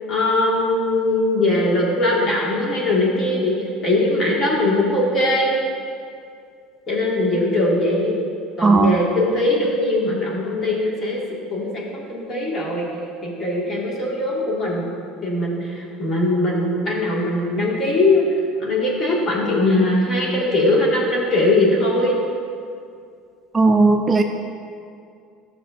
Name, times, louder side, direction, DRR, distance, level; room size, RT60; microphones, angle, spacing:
voice 1, 0.1-5.6 6.9-8.1 8.6-11.2 11.5-12.9 13.2-14.9 15.2-18.2 18.6-22.2, left 2 dB, 35° left, -3 dB, 1.8 m, -20 dB
voice 2, 8.6-9.0 23.5-24.2, right 3 dB, 25° right, 4 dB, 0.4 m, -15 dB
12.5 x 6.6 x 2.6 m, 2.4 s
supercardioid pair, 115°, 0 cm